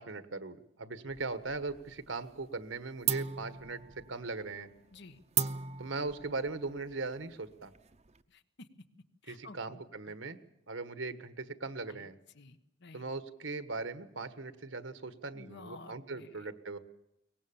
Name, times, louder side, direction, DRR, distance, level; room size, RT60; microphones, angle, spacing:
voice 1, 0.0-3.8 4.1-4.7 5.8-7.7 9.3-10.4 10.7-12.1 12.9-16.8, right 3 dB, 75° right, 11 dB, 1.5 m, -39 dB
sound 1, 1.1-2.0 2.3-2.7 3.0-8.2, right 8 dB, 35° right, 0.8 m, -38 dB
voice 2, 8.3-8.7 9.2-10.1 11.9-12.1 12.3-13.0 15.3-16.5, left 3 dB, 65° left, 10 dB, 1.3 m, -53 dB
23.0 x 19.0 x 7.2 m, 0.83 s
head